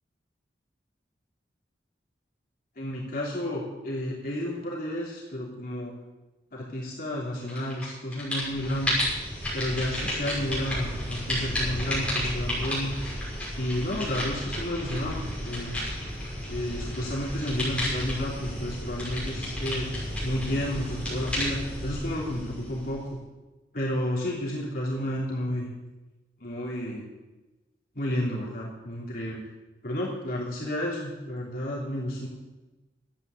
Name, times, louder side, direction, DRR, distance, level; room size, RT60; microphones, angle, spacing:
voice 1, 2.8-5.9 6.5-9.1 9.5-12.9 13.6-15.8 16.5-19.9 20.2-23.0 23.7-25.7 26.4-27.0 27.9-29.4 29.8-32.3, left 1 dB, 50° left, -5 dB, 3.2 m, -31 dB
sound 1, 7.5-7.9 8.1-23.1, left 1 dB, 5° left, 6.2 m, -32 dB
12.5 x 9.2 x 8.3 m, 1.1 s
head